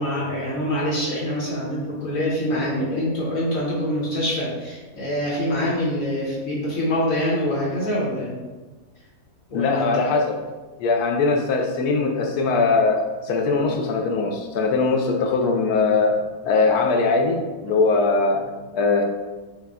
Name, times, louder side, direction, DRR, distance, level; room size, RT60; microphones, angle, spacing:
voice 1, 0.0-8.4 9.5-9.9, equal, 65° left, -6 dB, 1.4 m, -25 dB
voice 2, 9.5-10.4 10.8-19.0, left 3 dB, 85° left, 3 dB, 1.1 m, -21 dB
5.0 x 2.3 x 3.5 m, 1.3 s
omnidirectional pair, 1.6 m